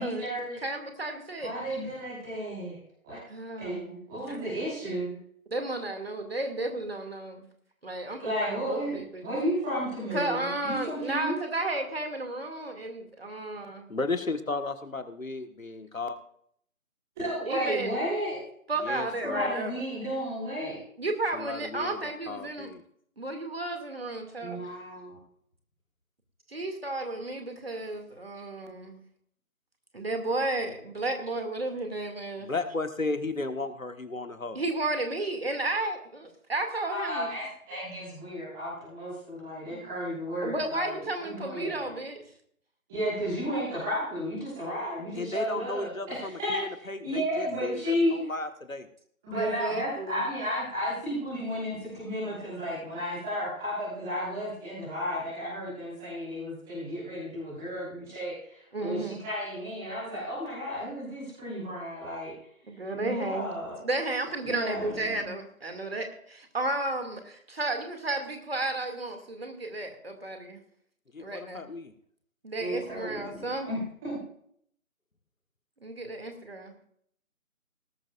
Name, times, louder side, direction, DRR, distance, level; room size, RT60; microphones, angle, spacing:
voice 1, 0.0-0.6 1.4-2.8 3.0-3.2 3.6-5.2 8.2-11.3 17.1-18.4 19.2-20.8 24.4-25.2 36.9-41.9 42.9-48.3 49.2-62.3 62.9-63.7 64.4-65.3 72.6-74.2, equal, ahead, -11 dB, 1.4 m, -33 dB
voice 2, 0.6-1.5 3.3-3.9 4.3-4.5 5.5-7.5 7.8-9.2 10.1-13.9 17.4-18.0 18.7-19.7 21.0-22.7 23.2-24.6 26.5-29.0 29.9-32.5 34.5-37.3 39.7-39.8 40.4-42.2 49.3-50.3 58.7-59.2 62.7-63.5 63.8-70.6 71.2-71.6 72.4-73.7 75.8-76.7, right 2 dB, 45° right, 5 dB, 2.5 m, -33 dB
voice 3, 13.9-16.2 18.8-19.5 21.3-22.8 32.4-34.6 45.1-48.9 71.1-71.9, left 3 dB, 65° left, 8 dB, 1.6 m, -34 dB
19.0 x 12.5 x 2.5 m, 0.65 s
figure-of-eight pair, 160°, 43 cm